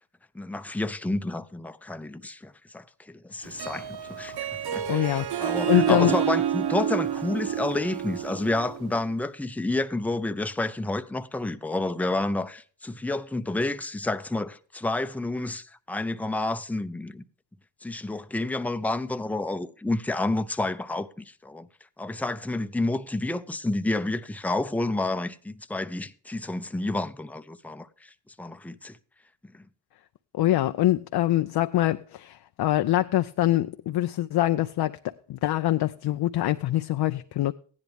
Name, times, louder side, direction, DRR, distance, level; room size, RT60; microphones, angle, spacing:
voice 1, 0.3-17.2 17.8-21.7 22.0-28.1 28.4-29.0 29.5-29.6, left 2 dB, 5° left, 0.6 m, -30 dB
Harp, 3.5-9.0, right 9 dB, 75° right, 0.7 m, -29 dB
voice 2, 4.9-6.1 30.3-35.0 35.3-37.5, left 14 dB, 70° left, 0.5 m, -24 dB
15.0 x 10.5 x 3.4 m
cardioid pair, 65°, 39 cm